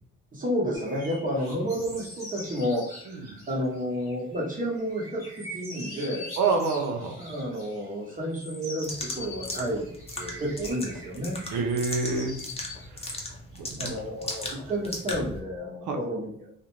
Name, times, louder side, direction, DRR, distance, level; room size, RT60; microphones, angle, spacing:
voice 1, 0.3-6.3 7.2-9.9 10.2-11.4 13.8-16.3, equal, 25° right, -2 dB, 0.9 m, -31 dB
sound 1, 0.7-12.9, left 1 dB, 10° right, 1.2 m, -43 dB
voice 2, 6.4-7.1 11.5-12.4 13.7-13.9 15.9-16.0, right 4 dB, 75° right, 4 dB, 0.6 m, -26 dB
sound 2, 8.8-15.4, left 2 dB, 20° left, 0.6 m, -38 dB
2.5 x 2.1 x 3.0 m, 0.66 s
cardioid pair, 90°, 30 cm